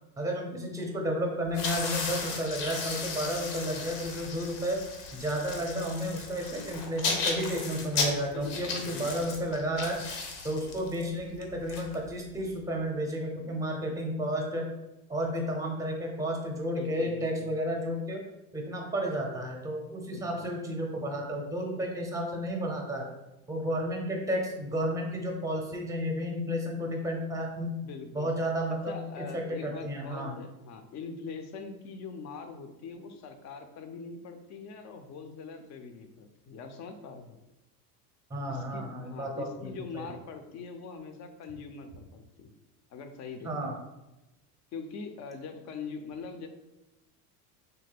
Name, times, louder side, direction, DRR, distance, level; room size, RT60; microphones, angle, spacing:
voice 1, 0.2-4.8 5.1-10.0 10.4-14.7 15.1-18.2 18.5-23.1 23.5-27.7 28.1-30.3 38.3-40.1 43.4-43.8, equal, 5° right, 1 dB, 0.6 m, -32 dB
sound 1, 1.5-12.5, left 4 dB, 85° left, 0.8 m, -35 dB
voice 2, 8.3-9.3 16.7-17.5 20.1-20.5 23.6-23.8 27.8-28.3 28.9-37.4 38.5-42.5 42.9-43.7 44.7-46.5, left 5 dB, 40° left, 7 dB, 0.5 m, -43 dB
3.3 x 2.1 x 3.3 m, 0.99 s
supercardioid pair, 100°, 45 cm